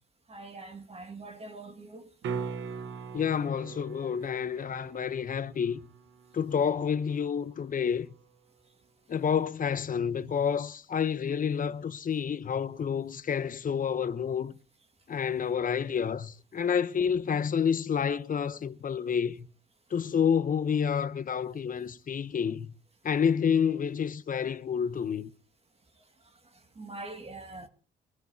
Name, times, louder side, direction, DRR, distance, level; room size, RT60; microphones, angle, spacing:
voice 1, 0.3-2.1 26.8-27.7, right 2 dB, 30° right, 2.2 m, -43 dB
sound 1, 2.2-8.3 12.9-13.0, right 5 dB, 75° right, 1.2 m, -42 dB
voice 2, 3.1-5.8 6.3-8.1 9.1-14.6 15.1-19.5 19.9-22.7 23.0-25.3, left 7 dB, 45° left, 0.9 m, -29 dB
22.5 x 14.0 x 2.8 m
cardioid pair, 90°, 20 cm